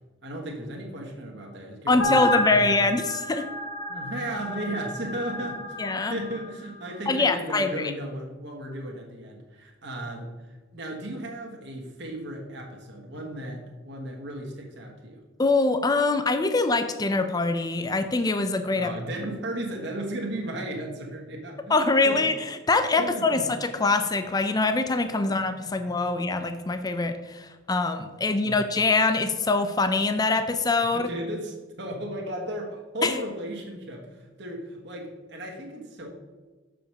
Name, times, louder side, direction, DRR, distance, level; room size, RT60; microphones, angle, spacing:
voice 1, 0.2-2.7 3.9-10.3 10.7-15.2 18.7-21.8 22.0-22.3 23.0-23.4 25.2-25.4 25.8-25.9 28.4-28.6 30.9-36.1, right 1 dB, 60° right, -1 dB, 1.4 m, -35 dB
voice 2, 1.9-3.5 5.8-6.2 7.1-7.9 15.4-18.9 21.7-31.1 33.0-33.2, left 3 dB, 20° left, 8 dB, 0.4 m, -24 dB
sound 1, 2.0-6.5, left 1 dB, 90° left, 1.1 m, -30 dB
6.9 x 5.1 x 6.1 m, 1.2 s
head